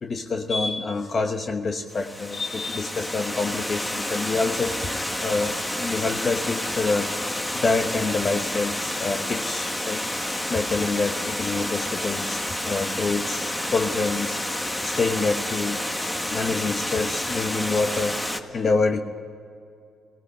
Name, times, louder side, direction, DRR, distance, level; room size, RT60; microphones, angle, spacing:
voice 1, 0.0-7.1 7.5-15.8 16.0-19.0, left 3 dB, 40° left, 5 dB, 1.1 m, -27 dB
Water, 1.9-18.4, left 1 dB, 10° left, 1.4 m, -29 dB
17.5 x 17.0 x 9.8 m, 2.4 s
cardioid pair, 90°, 0 cm